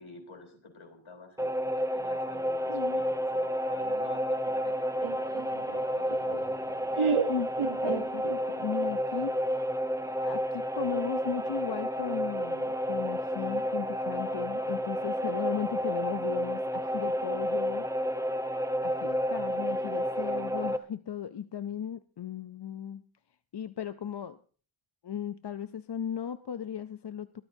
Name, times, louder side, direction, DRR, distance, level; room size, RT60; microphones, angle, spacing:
voice 1, 0.0-1.5 1.9-6.4, left 3 dB, 75° left, 2 dB, 3.8 m, -49 dB
sound 1, 1.4-20.8, equal, 5° right, 0.7 m, -31 dB
voice 2, 2.7-3.0 7.3-7.5 7.8-9.4 10.0-17.9 18.8-23.0 23.5-24.4 25.0-27.4, left 8 dB, 55° left, 11 dB, 0.6 m, -36 dB
Laughter, 5.0-8.7, right 6 dB, 90° right, 1.0 m, -32 dB
21.0 x 13.5 x 2.7 m, 0.41 s
wide cardioid pair, 70°, 48 cm